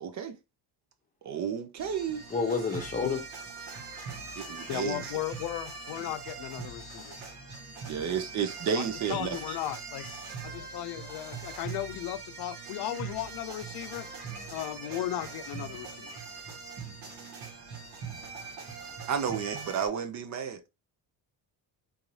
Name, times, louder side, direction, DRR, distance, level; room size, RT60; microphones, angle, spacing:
voice 1, 0.0-0.3 1.2-2.2 4.4-5.1 7.9-9.4 19.1-20.6, right 7 dB, 45° right, 0.6 m, -32 dB
sound 1, 1.8-19.9, right 5 dB, 75° right, 1.7 m, -42 dB
voice 2, 2.3-3.2, left 4 dB, 20° left, 0.8 m, -29 dB
voice 3, 4.7-7.1 8.7-10.1 10.4-14.1 14.5-16.2, left 13 dB, 75° left, 0.5 m, -36 dB
3.8 x 2.7 x 3.1 m
cardioid pair, 150°, 40 cm